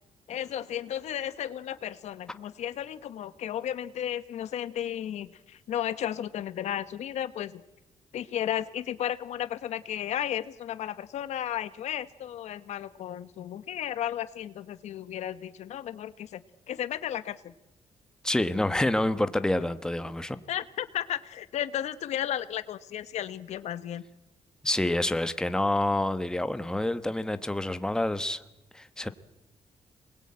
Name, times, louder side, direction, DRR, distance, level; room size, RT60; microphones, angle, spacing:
voice 1, 0.3-7.6 8.1-16.4 16.7-17.5 20.5-24.0, left 11 dB, 75° left, 14 dB, 1.2 m, -34 dB
voice 2, 18.2-20.4 24.6-28.4 28.7-29.1, left 1 dB, 5° left, 11 dB, 1.2 m, -27 dB
27.0 x 20.5 x 8.8 m, 0.98 s
cardioid pair, 120°, 12 cm